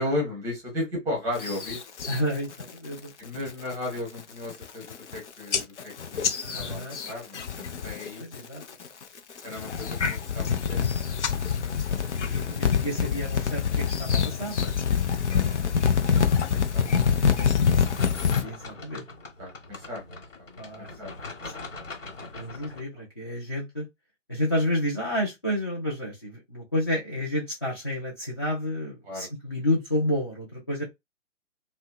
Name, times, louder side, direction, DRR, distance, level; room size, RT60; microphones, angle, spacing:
voice 1, 0.0-1.8 3.2-8.2 9.4-10.9 12.2-12.6 15.3-16.2 16.5-17.9 19.4-21.1 29.0-29.3, left 1 dB, 10° right, 0.7 m, -36 dB
sound 1, 1.4-2.2 2.6-3.0 3.4-3.7 4.2-4.3 4.5-5.2 5.5-8.1 8.3-8.9 9.4-18.4, left 6 dB, 65° left, 0.6 m, -26 dB
voice 2, 2.1-3.1 6.4-7.0 8.2-8.6 11.4-14.7 18.4-19.0 20.6-20.9 21.4-21.5 22.3-23.9 24.3-30.8, left 1 dB, 20° left, 0.4 m, -30 dB
sound 2, 17.8-22.8, left 3 dB, 80° left, 1.2 m, -41 dB
2.7 x 2.0 x 2.3 m
figure-of-eight pair, 135°, 38 cm